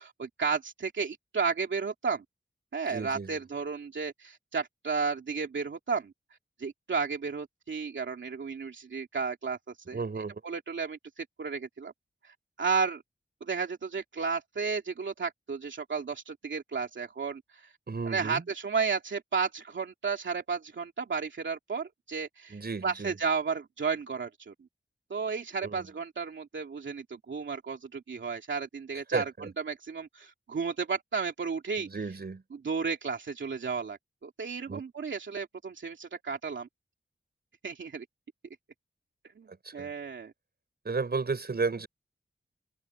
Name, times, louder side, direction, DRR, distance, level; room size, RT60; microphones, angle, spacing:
voice 1, 0.0-2.2 2.7-6.1 6.6-9.6 9.9-11.9 12.2-13.0 13.4-17.7 18.0-24.5 25.1-29.3 29.6-31.9 32.5-36.7 37.6-38.0 39.4-40.3, right 5 dB, 85° right, 2.7 m, -33 dB
voice 2, 2.9-3.4 9.9-10.4 17.9-18.4 22.5-23.1 25.6-25.8 29.1-29.5 31.8-32.4 34.7-34.8 39.5-39.9 40.8-41.9, right 4 dB, 60° right, 6.4 m, -33 dB
wide cardioid pair, 85°, 19 cm